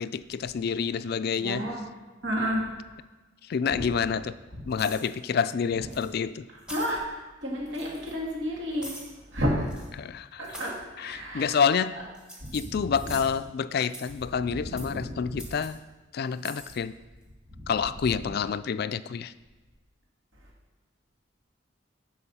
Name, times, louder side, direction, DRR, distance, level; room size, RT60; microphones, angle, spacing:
voice 1, 0.0-1.6 3.4-4.3 4.7-6.5 10.0-10.4 11.0-12.0 12.5-15.8 16.1-16.9 17.7-19.3, left 6 dB, 50° left, 15 dB, 0.3 m, -28 dB
voice 2, 1.4-1.9 2.2-2.7 3.7-3.9 4.5-4.6 6.7-7.0 7.4-8.9 9.3-9.7 10.4-11.6 12.4-13.1 14.5-15.2 17.5-17.7, equal, 65° right, -3 dB, 2.1 m, -31 dB
sound 1, 4.7-5.1 5.9-6.1 6.6-7.0 7.7-8.1 8.8-9.1 9.6-9.9 10.4-10.8 11.4-11.8 12.1-13.4 13.8-14.2 14.8-15.0 15.4-15.7 16.3-16.7, equal, 5° right, 1.5 m, -44 dB
11.0 x 4.8 x 5.5 m, 1.2 s
head